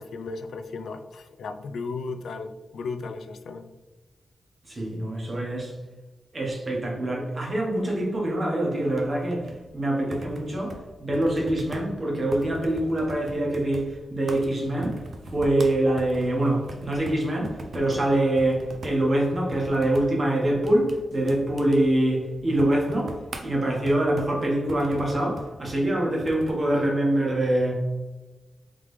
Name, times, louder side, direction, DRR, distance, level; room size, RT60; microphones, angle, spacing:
voice 1, 0.0-3.7, left 4 dB, 90° left, 7 dB, 0.4 m, -35 dB
voice 2, 4.7-5.7 6.3-23.1 23.4-27.8, right 1 dB, 35° right, -2 dB, 1.3 m, -25 dB
sound 1, 8.8-26.7, right 1 dB, 60° right, 0.5 m, -43 dB
3.7 x 3.3 x 3.3 m, 1.2 s
wide cardioid pair, 110°, 0 cm